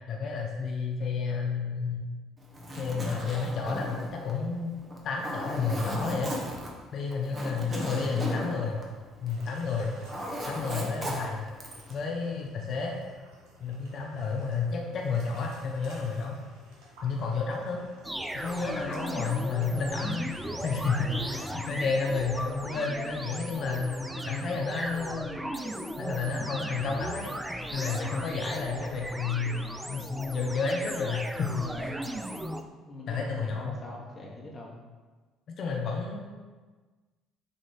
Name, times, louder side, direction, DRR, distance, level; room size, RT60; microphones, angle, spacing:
voice 1, 0.1-2.1 2.8-4.8 5.0-6.3 6.9-8.8 9.2-9.9 10.5-11.5 11.9-13.0 13.6-16.4 17.0-17.8 18.3-25.3 26.0-31.9 33.1-33.8 35.5-36.3, left 4 dB, 50° left, 0 dB, 0.8 m, -31 dB
Zipper (clothing), 2.4-9.5 9.8-12.0, equal, 30° right, 1.3 m, -36 dB
voice 2, 7.8-8.6 21.0-21.7 31.5-32.1 32.6-34.8, left 3 dB, 30° left, -3 dB, 1.2 m, -43 dB
sound 1, 9.3-20.5, equal, 65° right, 1.4 m, -54 dB
sound 2, 18.0-32.6, right 1 dB, 10° right, 0.4 m, -37 dB
7.1 x 2.8 x 4.9 m, 1.3 s
hypercardioid pair, 55°, 0 cm